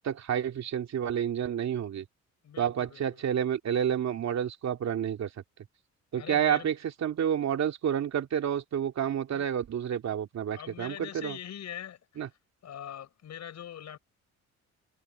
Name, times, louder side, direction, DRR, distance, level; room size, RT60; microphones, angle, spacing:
voice 1, 0.0-2.1 2.6-5.3 6.1-6.7 7.0-11.4 12.2-12.3, right 9 dB, 60° right, 2.8 m, -29 dB
voice 2, 2.4-3.2 6.1-6.7 9.3-9.5 10.5-12.4 12.6-14.0, left 10 dB, 65° left, 5.3 m, -43 dB
cardioid pair, 90°, 30 cm